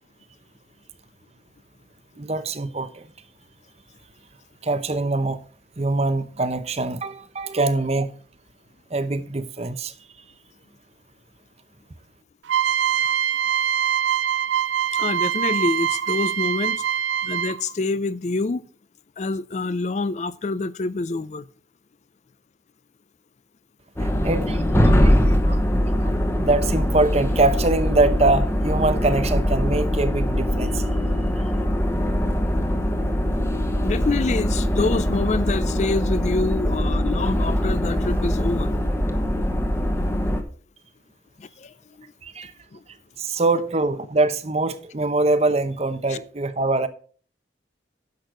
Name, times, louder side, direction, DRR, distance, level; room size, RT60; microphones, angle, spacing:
voice 1, 2.2-3.1 4.6-5.4 5.8-8.1 8.9-9.9 24.0-24.6 25.0-25.6 26.0-30.9 31.4-31.5 42.2-42.5 43.2-46.9, right 2 dB, 35° right, 0.7 m, -23 dB
sound 1, 12.5-17.7, right 9 dB, 80° right, 0.4 m, -23 dB
voice 2, 14.9-16.9 17.2-18.6 19.2-21.4 33.8-38.8 41.4-41.7 42.7-42.8 46.1-46.2, left 3 dB, 40° left, 0.4 m, -26 dB
sound 2, 24.0-40.4, equal, 15° left, 1.1 m, -22 dB
10.5 x 6.4 x 4.9 m
head